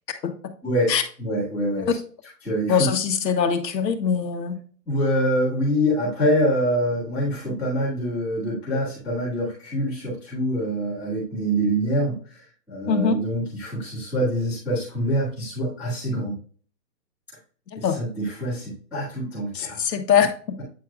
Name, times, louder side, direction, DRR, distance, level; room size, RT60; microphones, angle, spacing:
voice 1, 1.2-1.9 2.4-2.9 4.9-12.4 12.7-16.3 17.8-19.8, equal, 5° right, -15 dB, 2.1 m, -25 dB
voice 2, 2.7-4.6 12.9-13.2 17.7-18.0 19.5-20.3, left 7 dB, 85° left, 7 dB, 1.1 m, -22 dB
8.4 x 4.8 x 2.3 m, 0.43 s
hypercardioid pair, 170°, 49 cm